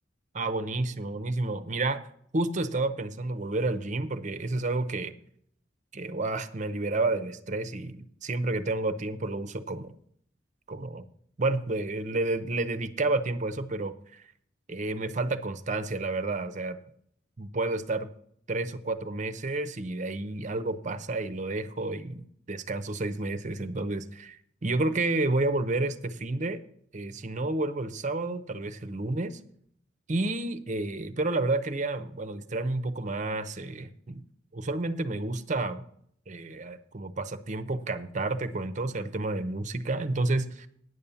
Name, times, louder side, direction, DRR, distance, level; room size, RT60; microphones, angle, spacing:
voice 1, 0.3-2.0 2.3-5.1 5.9-10.0 10.7-11.0 11.4-14.2 14.7-16.8 17.4-18.1 18.5-26.6 26.9-29.4 30.1-34.2 34.5-35.8 36.3-40.7, right 2 dB, 40° right, 12 dB, 0.7 m, -30 dB
9.6 x 7.1 x 6.9 m, 0.66 s
head